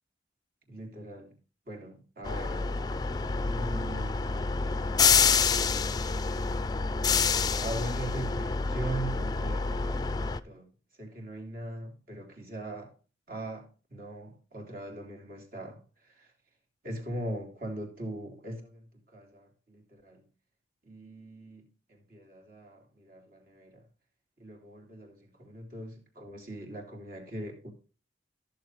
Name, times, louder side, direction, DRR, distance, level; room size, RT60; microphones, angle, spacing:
voice 1, 0.7-1.4 1.7-2.7 3.4-4.4 7.6-10.7 11.0-12.9 13.3-16.3 16.8-20.2 20.8-23.8 24.4-27.7, right 1 dB, 50° right, 3.4 m, -41 dB
sound 1, 2.2-10.4, left 5 dB, 20° left, 0.4 m, -27 dB
15.0 x 6.9 x 3.2 m
head